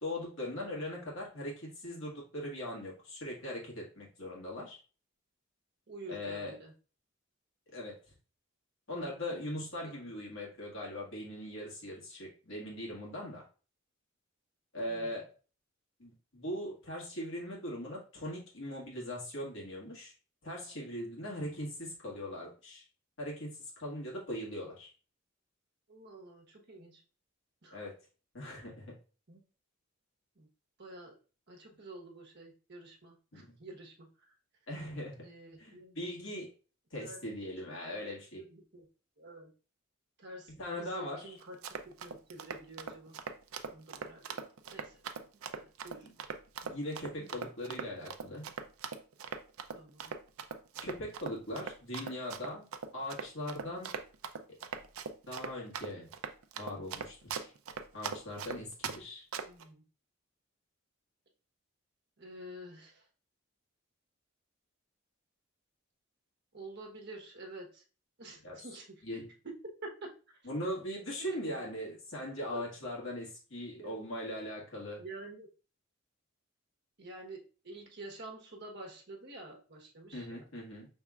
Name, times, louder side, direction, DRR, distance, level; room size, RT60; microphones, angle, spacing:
voice 1, 0.0-4.8 6.1-6.5 7.7-8.0 8.9-13.4 14.7-15.3 16.0-20.1 20.4-22.8 23.2-24.9 27.7-27.9 28.3-28.9 33.3-33.5 34.7-35.2 35.6-36.5 36.9-38.4 40.6-41.4 46.0-46.1 46.6-48.4 50.8-52.7 52.9-53.9 55.3-56.1 56.5-57.5 57.9-59.2 68.4-68.6 69.0-69.3 70.4-75.0 80.1-80.9, left 1 dB, 65° left, -3 dB, 1.7 m, -40 dB
voice 2, 5.9-6.7 9.3-9.5 10.0-10.2 14.9-15.1 25.9-27.0 27.6-27.8 29.3-29.4 30.4-30.5 30.8-31.1 31.5-34.1 35.2-35.9 37.0-37.2 38.4-38.9 39.2-39.5 40.2-41.6 41.8-43.1 43.7-44.2 44.7-44.9 45.5-46.1 47.1-47.3 49.7-50.2 59.4-59.8 62.2-63.0 66.5-67.8 68.2-69.0 69.4-69.5 69.8-70.4 71.2-71.4 72.5-72.6 73.8-74.1 75.0-75.5 77.0-80.5, right 2 dB, 55° right, 0 dB, 1.1 m, -49 dB
Run, 41.4-59.0 59.3-59.6, right 6 dB, 90° right, 0.5 m, -40 dB
5.4 x 3.5 x 2.4 m, 0.36 s
head